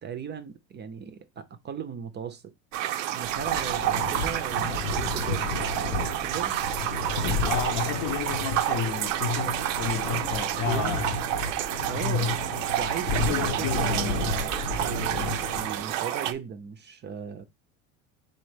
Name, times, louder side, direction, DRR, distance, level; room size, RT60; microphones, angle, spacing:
voice 1, 0.0-2.5 3.1-6.6 10.7-11.1 11.9-12.3 12.7-17.4, right 7 dB, 30° right, 0.5 m, -37 dB
sound 1, 2.7-16.3, right 12 dB, 85° right, 0.5 m, -29 dB
sound 2, 3.2-16.0, left 3 dB, 80° left, 0.9 m, -33 dB
voice 2, 7.4-11.2 11.9-12.4 13.2-14.3, left 7 dB, 55° left, 0.7 m, -31 dB
4.1 x 4.0 x 3.2 m
supercardioid pair, 95°, 38 cm